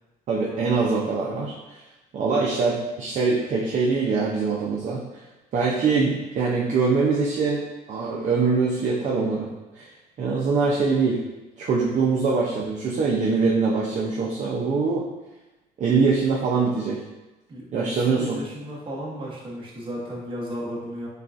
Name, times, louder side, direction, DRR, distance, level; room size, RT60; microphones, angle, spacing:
voice 1, 0.3-1.8 2.1-5.0 5.5-9.5 9.8-9.9 10.2-11.2 11.6-15.0 15.8-17.0 17.7-18.4, right 4 dB, 45° right, -3 dB, 0.6 m, -23 dB
voice 2, 17.5-21.1, equal, 30° right, -5 dB, 1.2 m, -34 dB
6.5 x 2.3 x 2.5 m, 1.1 s
cardioid pair, 110°, 17 cm